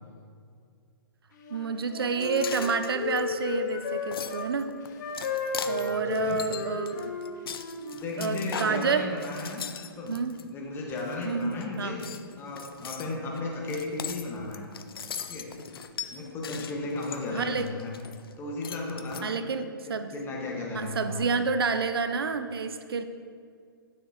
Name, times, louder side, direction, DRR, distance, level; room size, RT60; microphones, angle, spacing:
Wind instrument woodwind instrument, 1.4-4.5 5.0-8.1, left 4 dB, 50° left, 0.9 m, -34 dB
voice 1, 1.5-4.7 5.7-7.1 8.2-9.1 10.1-10.4 11.2-12.0 17.3-17.7 19.2-20.1 20.7-23.0, right 5 dB, 75° right, 9 dB, 0.5 m, -29 dB
sound 1, 2.2-10.4 10.9-11.7 12.0-18.3 18.6-19.2, left 7 dB, 70° left, 0.5 m, -40 dB
voice 2, 5.6-6.4 7.9-10.2 10.5-12.0 12.4-14.7 15.3-15.6 16.1-17.9 18.4-19.3 19.9-21.2, left 2 dB, 20° left, -1 dB, 1.3 m, -35 dB
9.9 x 6.5 x 2.8 m, 2.1 s
hypercardioid pair, 130°, 12 cm